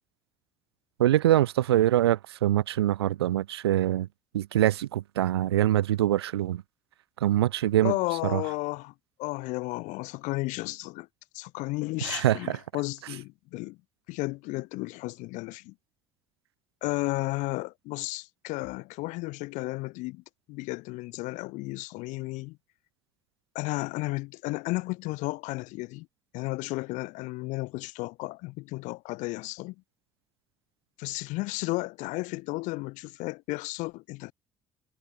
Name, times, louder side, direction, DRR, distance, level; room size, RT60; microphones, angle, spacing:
voice 1, 1.0-4.1 4.3-6.6 7.2-7.9 8.2-8.4 12.0-12.6, right 13 dB, 90° right, 1.8 m, -24 dB
voice 2, 7.8-8.9 9.2-11.1 11.3-13.8 14.1-15.7 16.8-20.2 20.5-22.6 23.5-26.1 26.3-29.7 31.0-34.3, left 22 dB, 75° left, 4.5 m, -33 dB
hypercardioid pair, 55°, 13 cm